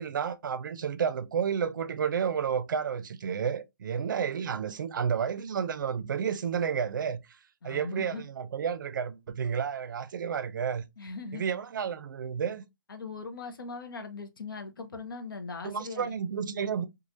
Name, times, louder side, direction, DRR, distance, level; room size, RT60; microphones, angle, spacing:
voice 1, 0.0-7.2 7.6-10.8 11.3-12.6 15.6-16.8, right 7 dB, 65° right, 0.4 m, -31 dB
voice 2, 7.6-8.3 11.0-11.4 12.9-16.1, left 4 dB, 85° left, 0.7 m, -40 dB
3.1 x 2.4 x 2.4 m
hypercardioid pair, 150°, 11 cm